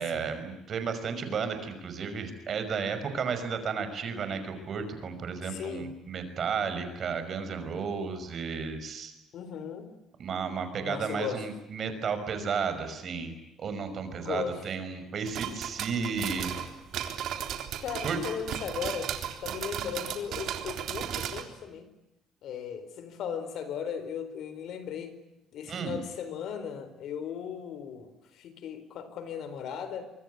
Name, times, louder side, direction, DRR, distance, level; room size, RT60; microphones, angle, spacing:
voice 1, 0.0-9.1 10.2-13.3 13.6-16.5 18.0-18.2 25.7-26.0, right 5 dB, 40° right, 9 dB, 5.7 m, -33 dB
voice 2, 5.4-5.9 9.3-9.9 10.8-11.4 14.2-14.6 17.8-19.1 19.4-21.9 22.4-25.2 25.5-30.1, left 7 dB, 60° left, 12 dB, 4.4 m, -37 dB
popcorn popping, 15.2-21.4, right 9 dB, 65° right, 3.7 m, -35 dB
25.5 x 23.5 x 9.5 m, 0.90 s
cardioid pair, 130°, 0 cm